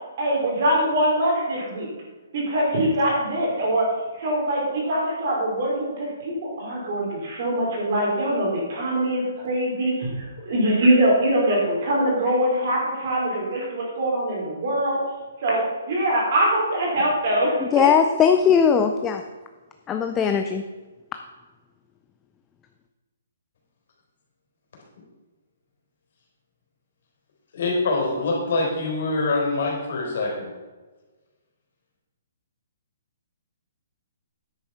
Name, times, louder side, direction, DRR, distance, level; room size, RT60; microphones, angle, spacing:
voice 1, 0.2-1.9 2.3-3.9 4.1-15.0 15.4-17.9, right 1 dB, 35° right, -3 dB, 3.9 m, -23 dB
voice 2, 17.7-19.2 19.9-20.6, left 7 dB, 10° left, 6 dB, 0.4 m, -19 dB
voice 3, 27.5-30.5, left 3 dB, 50° left, 0 dB, 3.9 m, -24 dB
10.0 x 8.0 x 5.6 m, 1.3 s
hypercardioid pair, 180°, 0 cm